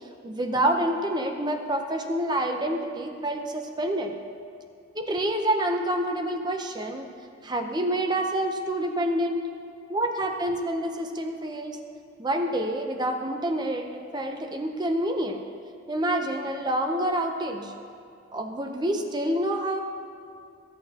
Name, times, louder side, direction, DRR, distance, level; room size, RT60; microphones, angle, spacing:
voice 1, 0.2-4.1 4.9-7.1 7.4-9.5 9.9-11.8 12.2-15.4 15.9-17.7 18.3-19.8, right 1 dB, 20° right, 4 dB, 0.7 m, -27 dB
24.5 x 8.7 x 2.9 m, 2.5 s
head